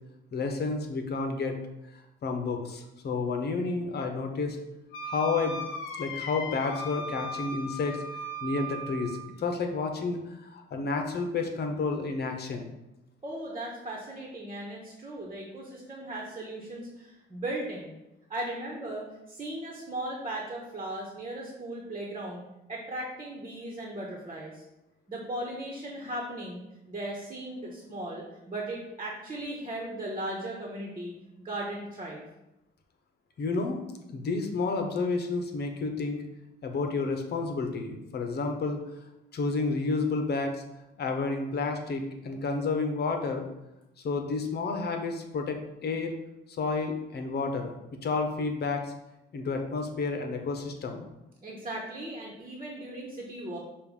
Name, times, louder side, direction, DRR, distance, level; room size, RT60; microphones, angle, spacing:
voice 1, 0.3-1.6 2.2-4.6 5.1-5.6 6.0-8.0 8.4-12.7 33.4-33.8 34.1-36.2 36.6-38.8 39.3-40.6 41.0-43.4 44.0-46.1 46.6-47.7 48.0-48.9 49.3-51.1, left 4 dB, 55° left, 4 dB, 1.0 m, -30 dB
Wind instrument woodwind instrument, 4.9-9.3, equal, 85° left, 0.8 m, -37 dB
voice 2, 13.2-17.9 18.3-22.4 22.7-24.6 25.1-32.2 51.4-53.6, right 1 dB, 30° right, -2 dB, 1.3 m, -37 dB
6.8 x 2.6 x 5.4 m, 0.92 s
cardioid pair, 90°, 20 cm